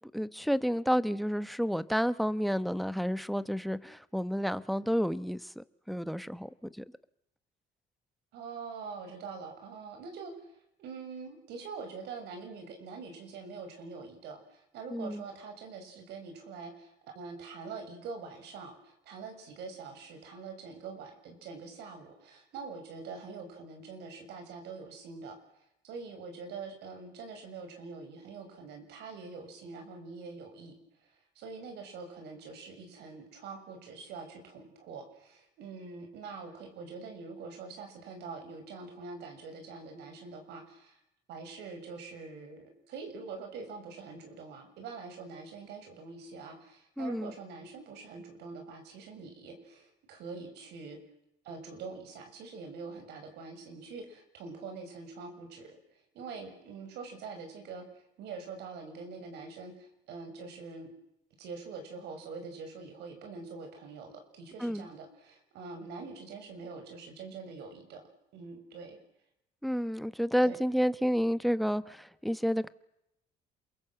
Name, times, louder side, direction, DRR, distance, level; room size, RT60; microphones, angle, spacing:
voice 1, 0.1-6.5 6.8-6.9 14.9-15.2 47.0-47.3 64.6-64.9 69.6-72.7, equal, ahead, 14 dB, 1.1 m, -30 dB
voice 2, 8.3-30.7 31.0-41.0 41.3-51.0 51.4-60.9 61.4-68.0 68.3-69.0 70.4-70.6, right 4 dB, 80° right, 5 dB, 7.0 m, -44 dB
28.0 x 22.5 x 7.9 m, 0.82 s
cardioid pair, 110°, 17 cm